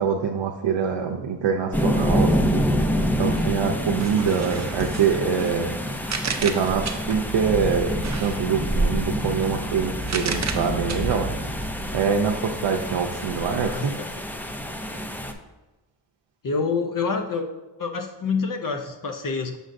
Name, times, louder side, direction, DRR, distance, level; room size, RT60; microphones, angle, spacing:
voice 1, 0.0-6.1 6.4-11.5 11.9-14.0, right 6 dB, 80° right, 2 dB, 0.6 m, -25 dB
sound 1, 1.7-15.3, equal, 5° left, 0.3 m, -27 dB
sound 2, 4.0-7.4 8.0-11.9, right 5 dB, 40° right, 0.6 m, -34 dB
voice 2, 13.6-14.1 16.4-17.5 17.8-19.6, left 4 dB, 50° left, 4 dB, 0.6 m, -27 dB
6.5 x 6.3 x 2.5 m, 1.1 s
wide cardioid pair, 110°, 43 cm